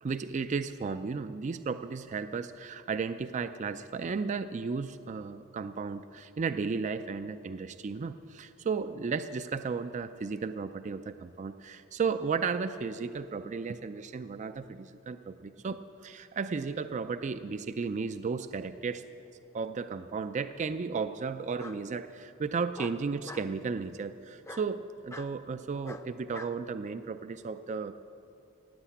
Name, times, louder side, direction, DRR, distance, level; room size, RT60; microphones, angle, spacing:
voice 1, 0.0-19.0 19.5-27.9, right 5 dB, 35° right, 11 dB, 0.3 m, -34 dB
Bark, 19.4-20.0 21.6-21.8 22.7-23.5 24.4-24.7 25.1-25.3 25.8-26.5, left 2 dB, 15° left, 0.6 m, -44 dB
15.5 x 8.9 x 8.4 m, 2.8 s
head